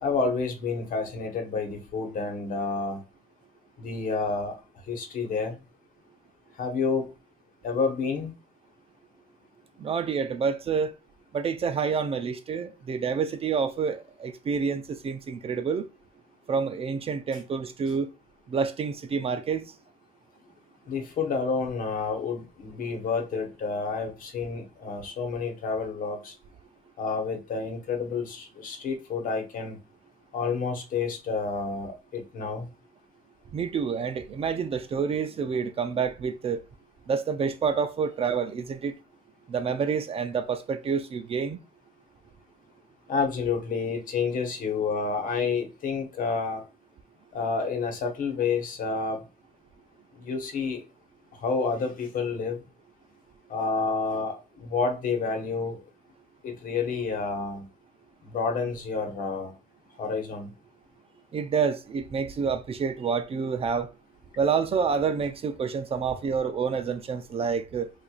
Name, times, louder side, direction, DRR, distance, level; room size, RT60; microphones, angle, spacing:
voice 1, 0.0-3.0 3.8-4.5 4.9-5.6 6.6-7.1 7.6-8.3 20.9-26.3 27.0-29.8 30.3-32.7 43.1-46.6 47.3-49.2 50.2-50.8 51.4-52.6 53.5-55.8 56.4-57.6 58.2-59.5 60.0-60.5, left 4 dB, 55° left, 1.2 m, -29 dB
voice 2, 9.8-10.9 11.3-15.8 16.5-18.1 18.5-19.7 33.5-36.6 37.1-38.9 39.5-41.6 61.3-63.9 64.4-67.9, right 6 dB, 35° right, 0.4 m, -28 dB
4.4 x 2.6 x 2.3 m
cardioid pair, 110°, 17 cm